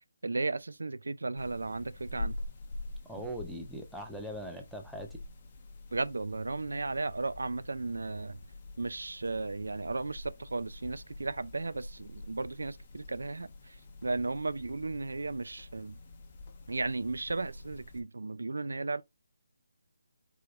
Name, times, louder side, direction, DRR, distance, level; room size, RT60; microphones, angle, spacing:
voice 1, 0.2-2.4 3.2-3.3 5.9-8.4 8.8-13.8 14.0-16.0 16.7-19.0, right 3 dB, 85° right, 0.4 m, -35 dB
sound 1, 1.4-18.0, left 2 dB, 25° left, 0.8 m, -46 dB
voice 2, 3.1-5.2, equal, ahead, 0.5 m, -41 dB
4.8 x 2.2 x 3.8 m
hypercardioid pair, 170°, 0 cm